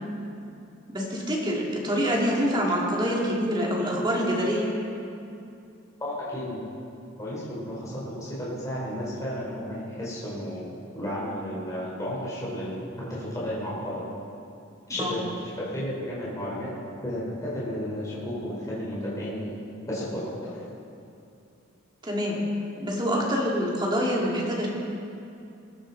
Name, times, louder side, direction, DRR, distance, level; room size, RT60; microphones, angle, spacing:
voice 1, 0.9-4.7 14.9-15.2 22.0-24.7, equal, 20° right, -3 dB, 2.4 m, -26 dB
voice 2, 6.0-6.7 7.2-14.0 14.9-16.7 17.0-19.6 19.9-20.6, equal, 15° left, -7 dB, 4.3 m, -33 dB
21.0 x 11.0 x 4.1 m, 2.6 s
head